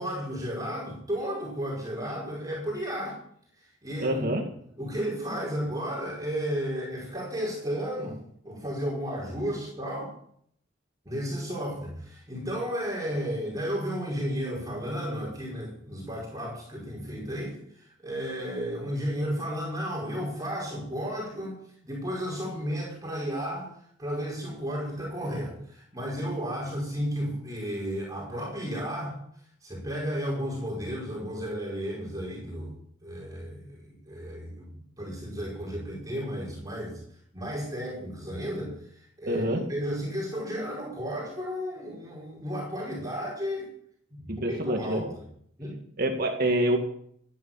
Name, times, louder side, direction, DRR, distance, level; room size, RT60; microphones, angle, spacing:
voice 1, 0.0-3.2 3.6-4.3 4.8-8.2 8.4-10.1 11.0-23.7 24.0-29.2 29.6-32.7 33.0-37.0 37.3-39.4 39.7-43.7 44.1-45.2 45.6-45.8, equal, 20° right, -4 dB, 5.2 m, -33 dB
voice 2, 4.0-4.4 39.3-39.6 44.3-45.0 46.0-46.8, right 1 dB, 55° right, 2 dB, 2.1 m, -26 dB
16.0 x 10.5 x 7.3 m, 0.66 s
head